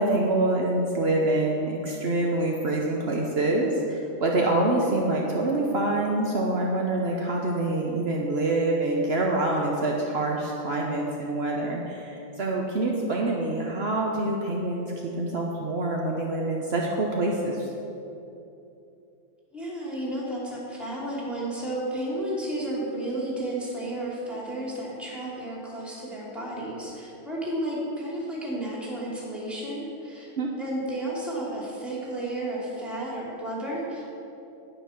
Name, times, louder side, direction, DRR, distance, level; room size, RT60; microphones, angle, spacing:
voice 1, 0.0-17.7 30.4-30.5, right 2 dB, 60° right, -1 dB, 0.6 m, -26 dB
voice 2, 19.5-30.3 30.6-34.2, right 1 dB, ahead, -5 dB, 2.7 m, -32 dB
9.8 x 9.3 x 5.8 m, 2.8 s
omnidirectional pair, 2.4 m